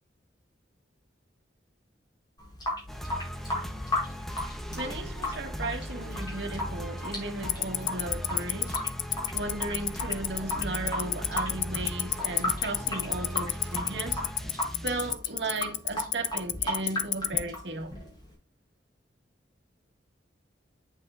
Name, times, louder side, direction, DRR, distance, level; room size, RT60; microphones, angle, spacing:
Water tap faucet / Sink (filling or washing) / Drip, 2.4-18.3, left 1 dB, 25° left, 5.7 m, -36 dB
sound 1, 2.9-15.1, equal, ahead, 0.9 m, -38 dB
voice 1, 4.7-8.8 9.3-14.2 14.8-17.9, right 2 dB, 65° right, 2.0 m, -35 dB
Tick-tock, 7.5-17.4, left 18 dB, 90° left, 0.6 m, -25 dB
9.0 x 7.9 x 2.5 m
head